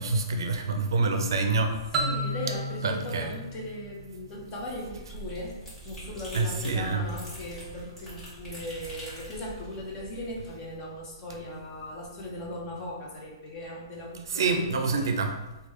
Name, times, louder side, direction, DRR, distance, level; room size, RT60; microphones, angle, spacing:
voice 1, 0.0-1.8 2.8-3.3 6.3-7.0 14.3-15.3, right 3 dB, 75° right, 5 dB, 0.4 m, -26 dB
voice 2, 1.9-5.6 5.8-15.1, left 1 dB, 25° left, -3 dB, 0.7 m, -38 dB
sound 1, 1.9-4.6, right 1 dB, 15° right, 0.4 m, -33 dB
sound 2, 4.5-10.5, equal, 10° left, 1.0 m, -44 dB
3.2 x 2.3 x 3.1 m, 1.0 s
hypercardioid pair, 160°, 2 cm